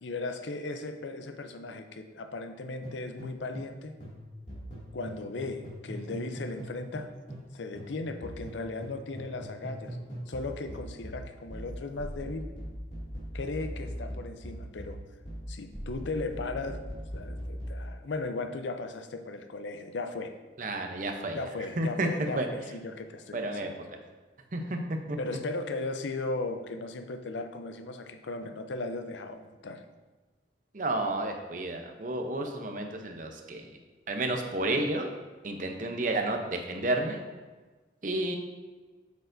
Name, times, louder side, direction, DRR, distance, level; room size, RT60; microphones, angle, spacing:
voice 1, 0.0-3.9 4.9-7.1 7.5-10.0 10.3-12.5 13.3-15.0 15.5-20.3 21.3-23.7 25.2-29.8, left 3 dB, 85° left, 8 dB, 0.6 m, -37 dB
sound 1, 2.8-3.8 4.0-7.5 7.8-17.8, equal, 40° left, 2.3 m, -40 dB
voice 2, 20.6-21.4 21.8-22.1 22.4-22.5 23.3-23.7 24.5-25.2 30.7-33.7 34.1-35.1 35.4-37.2 38.0-38.4, right 2 dB, 45° right, 4 dB, 0.7 m, -31 dB
8.2 x 6.6 x 2.6 m, 1.3 s
head